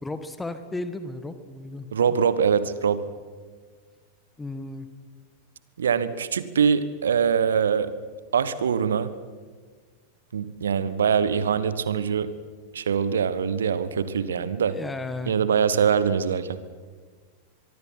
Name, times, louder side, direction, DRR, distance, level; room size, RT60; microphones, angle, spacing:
voice 1, 0.0-1.9 4.4-4.9 6.1-6.2 14.7-15.3, left 2 dB, 10° left, 10 dB, 1.6 m, -34 dB
voice 2, 1.9-3.1 5.8-7.9 8.3-9.1 10.3-12.3 12.7-14.8 15.3-16.6, right 7 dB, 65° right, 15 dB, 1.3 m, -23 dB
24.0 x 23.5 x 5.9 m, 1.5 s
figure-of-eight pair, 90°, 0 cm